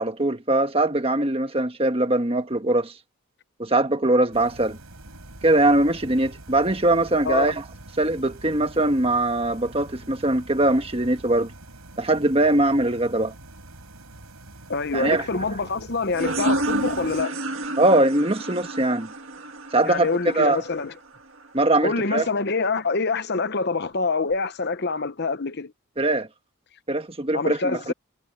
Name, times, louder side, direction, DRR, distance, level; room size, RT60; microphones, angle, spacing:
voice 1, 0.0-2.9 3.6-4.8 5.4-7.6 8.0-11.5 12.0-13.3 14.9-15.3 17.8-19.1 19.7-20.6 21.5-22.3 26.0-26.3 26.9-27.9, right 2 dB, 25° right, 1.5 m, -21 dB
sound 1, 4.3-17.2, right 1 dB, 85° right, 4.6 m, -45 dB
voice 2, 7.2-7.6 14.7-17.4 19.8-20.9 21.8-25.7 27.3-27.9, left 4 dB, 45° left, 0.9 m, -26 dB
sound 2, 16.1-21.5, right 1 dB, 60° right, 2.0 m, -30 dB
head